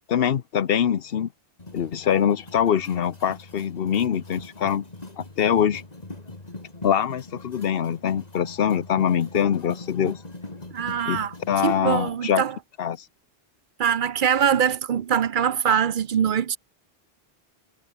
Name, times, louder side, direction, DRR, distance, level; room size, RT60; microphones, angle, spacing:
voice 1, 0.1-1.3 1.7-4.8 5.2-5.8 6.8-10.2 11.1-11.2 11.5-12.4 12.8-13.0, left 8 dB, 65° left, 1.0 m, -23 dB
sound 1, 1.6-12.1, left 2 dB, 40° left, 2.8 m, -41 dB
voice 2, 10.7-11.3 11.6-12.6 13.8-16.6, right 8 dB, 55° right, 0.8 m, -23 dB
omnidirectional pair, 1.1 m